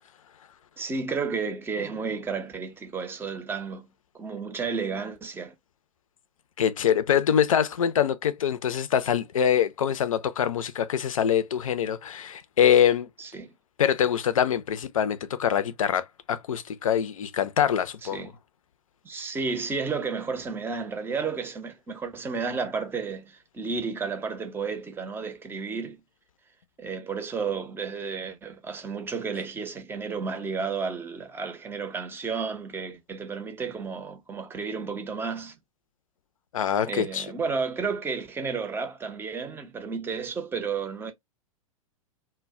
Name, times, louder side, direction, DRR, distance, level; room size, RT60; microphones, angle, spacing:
voice 1, 0.8-5.5 13.2-13.5 18.0-18.3 19.0-26.0 26.8-35.5 36.9-41.1, right 5 dB, 10° right, 0.6 m, -32 dB
voice 2, 6.6-13.1 13.8-18.3 36.5-37.3, left 9 dB, 70° left, 0.5 m, -24 dB
2.2 x 2.1 x 3.6 m
figure-of-eight pair, 100°, 18 cm